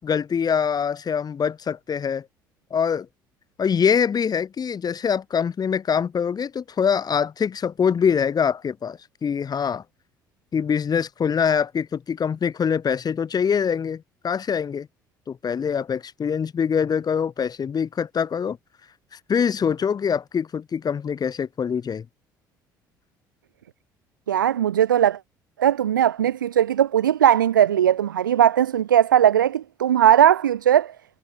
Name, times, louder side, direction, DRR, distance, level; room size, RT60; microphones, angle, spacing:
voice 1, 0.0-2.2 2.7-3.1 3.6-9.8 10.5-14.9 15.3-18.6 19.3-22.0, left 7 dB, 40° left, 5.9 m, -24 dB
voice 2, 24.3-25.2 25.6-30.9, right 10 dB, 80° right, 7.5 m, -18 dB
figure-of-eight pair, 55°, 10 cm